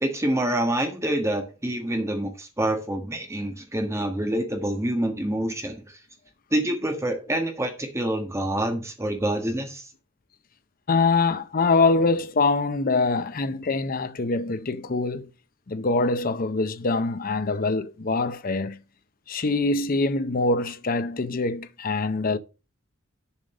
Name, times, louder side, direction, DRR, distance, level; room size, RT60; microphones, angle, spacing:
voice 1, 0.0-6.0 6.5-9.8, right 1 dB, 15° right, 1.5 m, -27 dB
voice 2, 10.9-15.3 15.7-18.8 19.3-22.4, left 3 dB, 45° left, 0.6 m, -24 dB
7.4 x 5.2 x 6.5 m
head